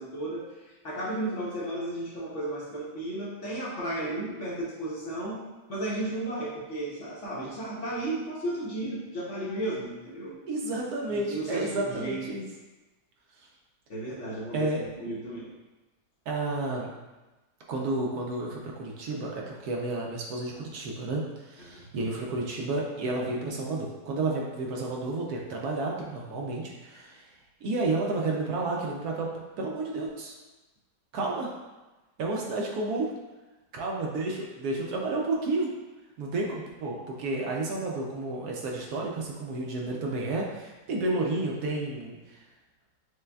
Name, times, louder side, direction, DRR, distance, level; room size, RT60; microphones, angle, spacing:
voice 1, 0.0-5.4 5.7-10.4 11.1-12.3 13.9-15.5 21.6-21.8, right 1 dB, 55° left, -7 dB, 1.0 m, -34 dB
voice 2, 10.5-12.4 14.5-14.8 16.3-16.9 17.7-27.2 27.6-30.3 31.1-31.5 32.2-33.1 33.7-35.7 36.2-42.4, right 2 dB, 70° right, -1 dB, 1.0 m, -31 dB
6.5 x 2.2 x 2.2 m, 1.1 s
omnidirectional pair, 1.8 m